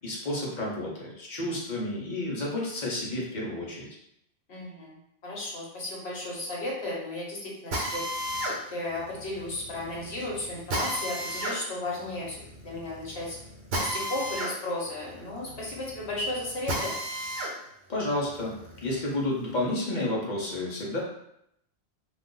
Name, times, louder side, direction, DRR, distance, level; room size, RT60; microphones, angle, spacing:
voice 1, 0.0-3.9 17.9-21.0, left 1 dB, 45° left, -4 dB, 0.9 m, -31 dB
voice 2, 4.5-8.1 8.7-12.4 12.6-13.4 13.8-16.9, left 2 dB, 70° left, -3 dB, 1.2 m, -34 dB
Drill, 7.7-17.5 18.0-19.6, right 1 dB, 65° right, 1.0 m, -34 dB
2.5 x 2.4 x 3.7 m, 0.76 s
omnidirectional pair, 1.1 m